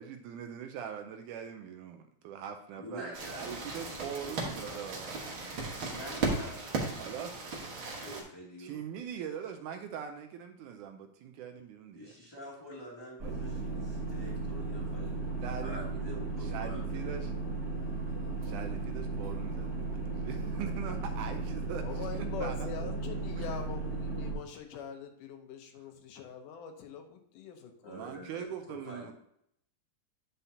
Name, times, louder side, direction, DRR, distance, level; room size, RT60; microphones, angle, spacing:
voice 1, 0.0-5.1 6.0-6.1 7.0-7.4 8.6-12.2 13.2-13.4 15.4-15.8 16.4-17.3 18.4-22.9 23.3-23.5 27.9-29.1, right 8 dB, 80° right, 6 dB, 2.0 m, -42 dB
voice 2, 2.8-4.7 5.8-7.2 8.0-8.8 11.9-15.1 15.6-17.1 27.8-29.1, equal, 10° left, -6 dB, 1.7 m, -46 dB
sound 1, 3.1-8.2, right 3 dB, 50° right, 1.7 m, -36 dB
sound 2, 13.2-24.3, right 3 dB, 30° right, 2.3 m, -35 dB
voice 3, 21.8-28.1, left 6 dB, 80° left, 5 dB, 2.3 m, -43 dB
9.4 x 5.6 x 2.7 m, 0.73 s
omnidirectional pair, 3.8 m